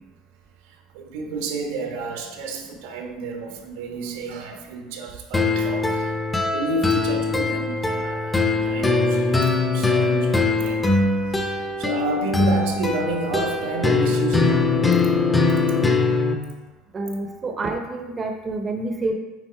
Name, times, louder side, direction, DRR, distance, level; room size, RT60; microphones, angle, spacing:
voice 1, 0.6-6.2 6.4-10.9 11.3-14.9 15.7-15.8, right 3 dB, 85° right, 2 dB, 1.3 m, -31 dB
sound 1, 5.3-16.3, left 3 dB, 10° left, 0.7 m, -21 dB
voice 2, 16.9-19.1, right 2 dB, 25° right, 4 dB, 0.7 m, -28 dB
8.9 x 3.8 x 4.5 m, 1.2 s
supercardioid pair, 135°, 0 cm